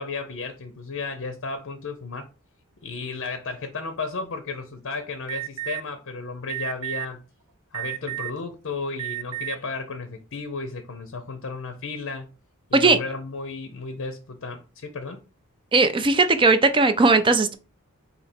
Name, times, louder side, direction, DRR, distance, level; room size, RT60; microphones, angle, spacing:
voice 1, 0.0-2.3 2.8-7.2 7.7-12.3 12.7-15.2, left 4 dB, 60° left, 0.6 m, -33 dB
Alarm, 5.3-5.8 6.5-7.1 7.7-8.4 9.0-9.6, right 18 dB, 85° right, 0.5 m, -31 dB
voice 2, 15.7-17.5, right 3 dB, 25° right, 0.4 m, -18 dB
4.1 x 2.8 x 4.2 m
head